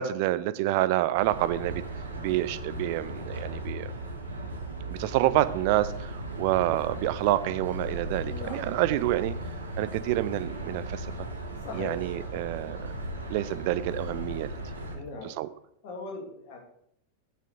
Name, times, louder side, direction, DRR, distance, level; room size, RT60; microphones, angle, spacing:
voice 1, 0.0-1.8 2.2-3.9 4.9-9.3 9.8-11.1 11.7-12.8 13.3-14.5 15.2-15.5, right 15 dB, 45° right, 15 dB, 0.5 m, -28 dB
sound 1, 1.2-15.0, right 1 dB, 75° right, 1.4 m, -37 dB
voice 2, 8.3-8.6 8.9-9.0 11.6-12.9 14.9-15.3 15.8-16.6, left 3 dB, 50° left, 0 dB, 2.6 m, -40 dB
8.5 x 6.0 x 4.8 m, 0.72 s
figure-of-eight pair, 90°, 0 cm